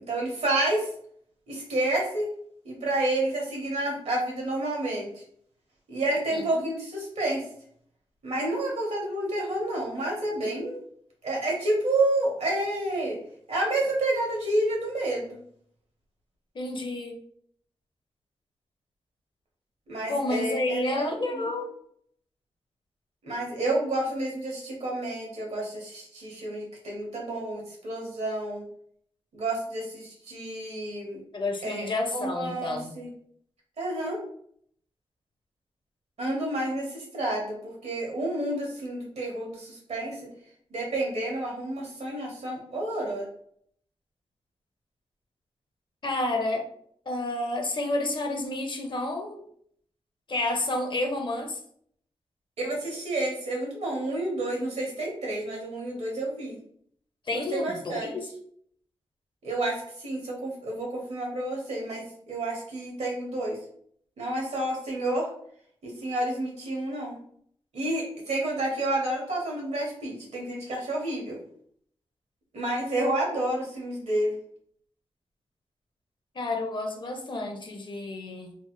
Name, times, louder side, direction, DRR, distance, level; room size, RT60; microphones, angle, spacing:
voice 1, 0.1-0.9 1.5-2.3 2.6-5.2 5.9-7.4 8.2-10.8 11.2-13.2 13.5-15.4 19.9-21.5 23.2-28.6 29.3-31.2 31.6-31.9 32.1-33.1 33.8-34.2 36.2-40.2 40.7-43.2 52.6-56.6 57.3-58.1 59.4-63.6 64.2-65.3 65.8-67.2 67.7-71.4 72.5-74.4, right 1 dB, 85° right, -2 dB, 1.2 m, -29 dB
voice 2, 6.3-6.6 16.5-17.2 20.1-21.7 31.3-32.9 46.0-46.7 47.1-49.4 50.3-51.6 57.3-58.2 76.3-78.6, left 2 dB, 45° left, 3 dB, 0.6 m, -30 dB
3.2 x 2.1 x 3.0 m, 0.64 s
wide cardioid pair, 95°, 11 cm